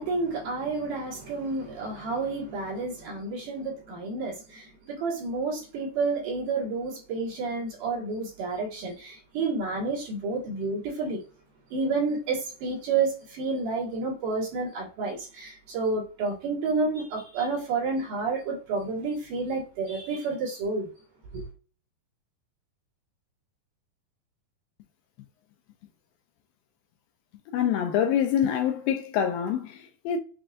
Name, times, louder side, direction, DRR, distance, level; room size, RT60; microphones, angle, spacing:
voice 1, 0.0-11.2 11.7-20.9 21.3-21.4, right 3 dB, 60° right, 3.1 m, -30 dB
voice 2, 27.5-30.2, left 9 dB, 80° left, 2.2 m, -26 dB
7.3 x 2.9 x 2.4 m
omnidirectional pair, 4.5 m